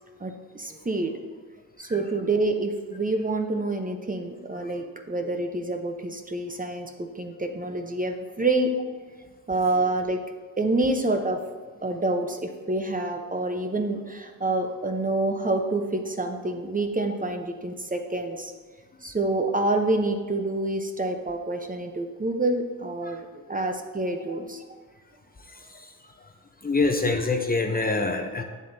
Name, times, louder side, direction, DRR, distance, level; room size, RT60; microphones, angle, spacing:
voice 1, 0.2-1.1 1.8-8.7 9.5-10.2 10.6-11.4 11.8-18.5 19.0-24.6, right 2 dB, 20° right, 5 dB, 0.7 m, -27 dB
voice 2, 25.5-25.9 26.6-28.4, left 3 dB, 25° left, 4 dB, 0.7 m, -26 dB
8.6 x 7.3 x 2.7 m, 1.5 s
cardioid pair, 70°, 40 cm